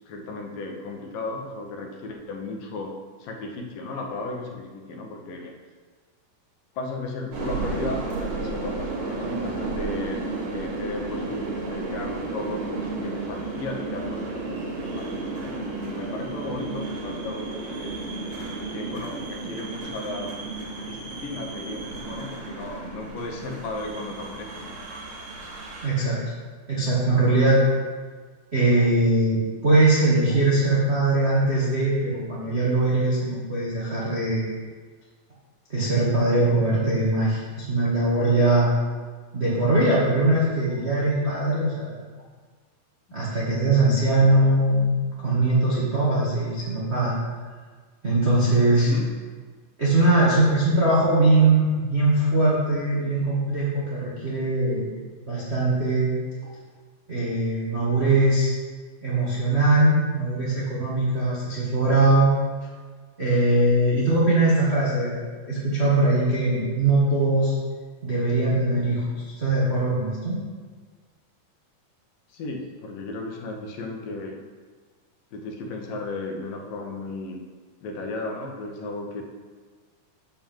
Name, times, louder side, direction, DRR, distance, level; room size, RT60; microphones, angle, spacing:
voice 1, 0.1-2.9 3.2-5.5 6.7-18.0 18.7-20.3 20.8-24.7 48.8-49.1 72.3-74.4 75.3-77.4 77.8-79.2, left 2 dB, 70° left, 1 dB, 2.5 m, -35 dB
sound 1, 7.3-25.9, right 3 dB, 55° right, 2.4 m, -33 dB
voice 2, 25.8-26.2 26.7-27.6 28.5-34.5 35.7-38.7 39.3-41.9 43.1-45.0 45.2-47.2 48.0-48.9 49.8-54.9 55.3-56.1 57.1-58.5 59.0-62.3 63.2-67.5 68.0-69.0 69.4-70.4, right 2 dB, 80° right, -8 dB, 0.5 m, -21 dB
7.1 x 5.5 x 7.3 m, 1.5 s
omnidirectional pair, 4.4 m